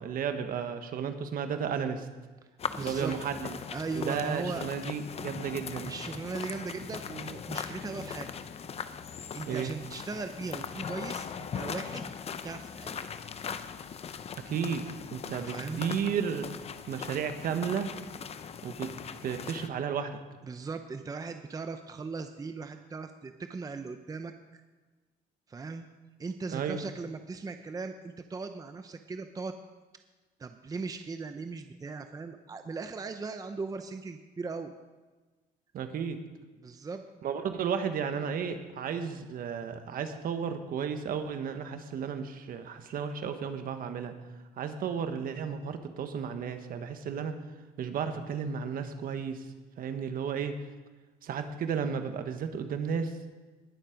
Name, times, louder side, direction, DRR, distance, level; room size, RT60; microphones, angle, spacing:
voice 1, 0.0-2.1 2.8-3.6 3.9-5.9 9.5-9.7 14.4-14.8 15.1-16.5 16.9-18.0 18.6-18.9 19.2-20.2 26.5-26.8 35.7-36.2 37.2-44.1 44.6-47.3 47.8-49.5 49.8-50.5 51.2-53.2, right 7 dB, 60° right, 7 dB, 1.4 m, -33 dB
sound 1, 2.6-19.7, left 7 dB, 40° left, 0.7 m, -40 dB
voice 2, 2.7-3.1 3.7-4.6 5.8-8.3 9.1-12.1 12.4-13.0 15.2-15.9 20.4-24.6 25.5-25.9 26.2-29.5 30.4-34.7 36.6-37.0, right 4 dB, 20° right, 8 dB, 0.7 m, -38 dB
20.0 x 7.4 x 5.2 m, 1.3 s
cardioid pair, 110°, 17 cm